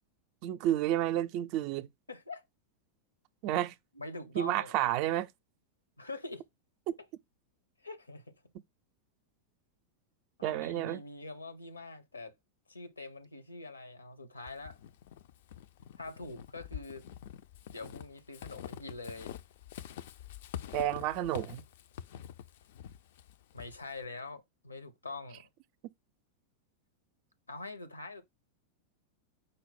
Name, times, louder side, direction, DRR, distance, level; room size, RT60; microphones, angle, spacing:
voice 1, 0.4-1.9 3.4-3.8 4.3-5.3 6.9-7.0 10.4-11.0 20.7-21.6, right 12 dB, 45° right, 0.3 m, -30 dB
voice 2, 2.1-2.4 4.0-4.7 6.0-6.5 7.8-8.3 10.4-12.3 12.7-14.8 16.0-17.1 17.7-19.3 23.5-25.5 27.5-28.2, left 2 dB, 80° left, 0.7 m, -44 dB
Walk footsteps / Squeak, 14.5-24.1, left 10 dB, 55° left, 0.3 m, -46 dB
5.2 x 2.0 x 4.1 m
figure-of-eight pair, 90°, 0 cm